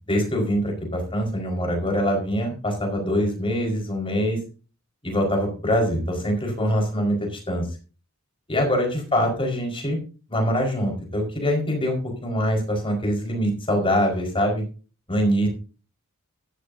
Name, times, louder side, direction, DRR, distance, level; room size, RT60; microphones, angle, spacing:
voice 1, 0.1-4.4 5.0-7.7 8.5-10.0 10.3-14.6 15.1-15.5, equal, 25° left, 2 dB, 4.9 m, -24 dB
14.0 x 12.5 x 2.8 m, 0.35 s
head